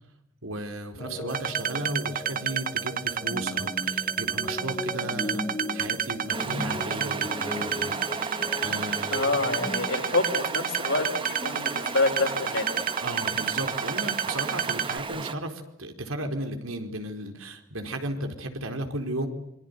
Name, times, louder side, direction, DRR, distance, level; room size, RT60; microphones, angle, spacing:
voice 1, 0.4-5.4 5.7-9.2 13.0-19.3, right 1 dB, 80° right, 5 dB, 4.5 m, -35 dB
voice 2, 1.0-1.3 9.1-12.7, left 3 dB, 65° left, 4 dB, 5.1 m, -27 dB
sound 1, 1.0-9.9, left 1 dB, 20° left, 1.1 m, -37 dB
sound 2, 1.3-15.0, right 8 dB, 45° right, 1.0 m, -30 dB
Stream, 6.3-15.3, right 4 dB, 25° right, 1.2 m, -35 dB
27.0 x 24.0 x 8.3 m, 0.84 s
head